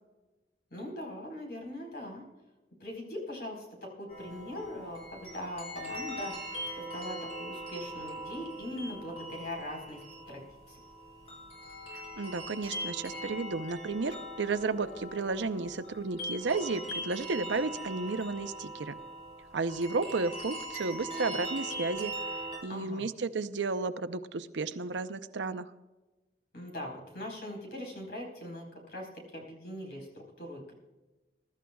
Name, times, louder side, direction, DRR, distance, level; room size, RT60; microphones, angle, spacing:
voice 1, 0.7-2.2 2.8-6.3 6.8-10.8 22.7-23.1 26.5-30.7, left 1 dB, 60° left, 0 dB, 4.4 m, -41 dB
sound 1, 4.1-22.6, right 1 dB, 35° left, 5.1 m, -41 dB
voice 2, 12.2-19.0 19.5-22.1 22.6-25.7, right 3 dB, 85° right, 11 dB, 0.7 m, -33 dB
22.0 x 12.5 x 2.4 m, 1.1 s
head